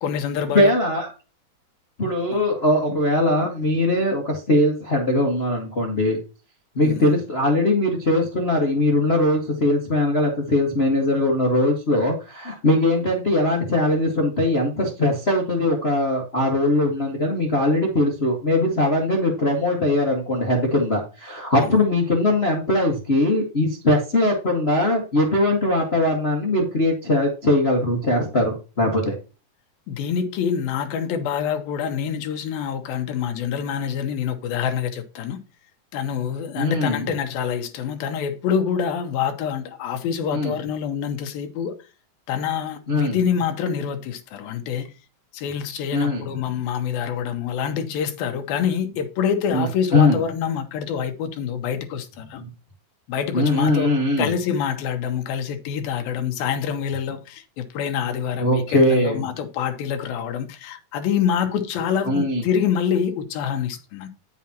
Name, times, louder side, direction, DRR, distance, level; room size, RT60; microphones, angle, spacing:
voice 1, 0.0-0.7 2.3-2.4 6.8-7.1 21.6-21.7 29.9-35.4 35.9-41.7 42.3-44.9 45.3-52.4 53.1-53.9 54.2-64.1, left 7 dB, 85° left, 2.9 m, -26 dB
voice 2, 0.5-1.1 2.0-6.2 6.7-29.1 36.5-37.1 40.3-40.5 42.9-43.2 45.9-46.2 49.5-49.7 49.9-50.2 53.3-54.3 58.4-59.2 62.0-62.4, left 1 dB, 70° left, 0.5 m, -21 dB
9.6 x 7.2 x 2.9 m
omnidirectional pair, 4.1 m